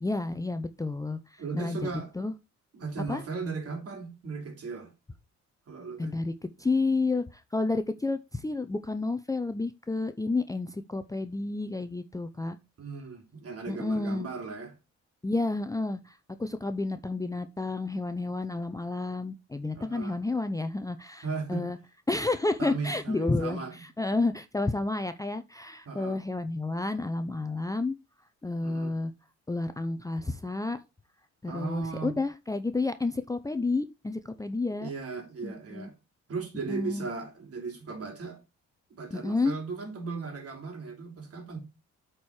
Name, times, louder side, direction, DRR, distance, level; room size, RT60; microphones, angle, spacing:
voice 1, 0.0-1.9 2.2-2.3 3.1-3.2 6.0-6.3 6.6-12.6 13.7-14.3 15.2-21.2 21.5-21.8 22.1-28.0 28.4-29.1 29.5-30.8 31.4-34.9 35.4-35.9 36.7-37.1 39.1-39.5, left 3 dB, 10° left, 0.6 m, -30 dB
voice 2, 1.4-2.1 2.7-4.9 5.7-6.1 12.8-14.8 19.7-20.2 21.2-21.7 22.6-23.8 25.8-26.2 28.6-29.0 31.4-32.2 34.8-36.0 36.3-38.4 38.9-41.6, right 4 dB, 50° right, 3.0 m, -37 dB
8.2 x 4.5 x 4.8 m
cardioid pair, 90°, 30 cm